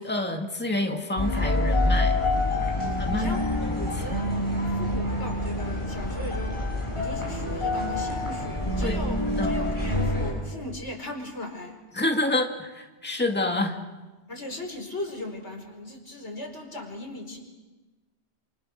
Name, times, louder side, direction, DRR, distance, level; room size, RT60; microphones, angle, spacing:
voice 1, 0.0-2.2 3.0-3.3 8.8-9.0 9.3-9.5 12.0-13.8, left 2 dB, 10° left, 3 dB, 2.0 m, -28 dB
sound 1, 1.2-10.3, left 1 dB, 25° left, 7.4 m, -26 dB
voice 2, 2.8-3.4 3.6-11.8 14.3-17.4, left 2 dB, 85° left, 2 dB, 5.0 m, -37 dB
29.5 x 27.5 x 6.4 m, 1.2 s
omnidirectional pair, 1.1 m